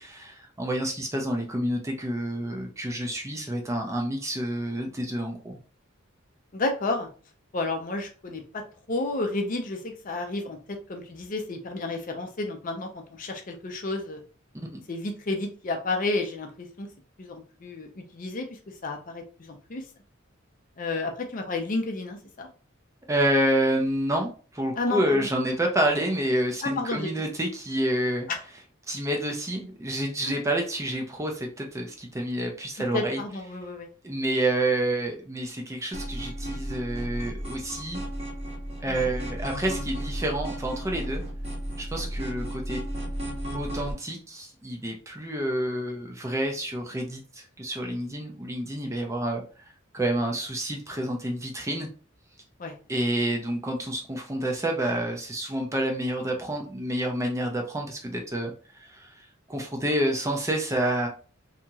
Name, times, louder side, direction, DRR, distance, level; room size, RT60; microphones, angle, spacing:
voice 1, 0.0-5.6 14.7-14.8 23.1-28.3 28.9-33.2 34.0-38.0 38.8-41.2 41.8-42.8 43.5-49.4 49.9-51.9 52.9-61.1, right 1 dB, 15° right, 1 dB, 0.5 m, -28 dB
voice 2, 6.5-7.1 7.5-14.2 14.9-16.9 17.2-19.8 20.8-22.5 24.8-25.3 26.6-27.1 28.3-28.4 30.2-30.3 32.9-33.9 38.9-39.1 52.6-52.7, left 2 dB, 40° left, 4 dB, 0.5 m, -31 dB
sound 1, 35.9-43.9, equal, 30° right, 0.8 m, -34 dB
2.8 x 2.7 x 2.3 m, 0.38 s
head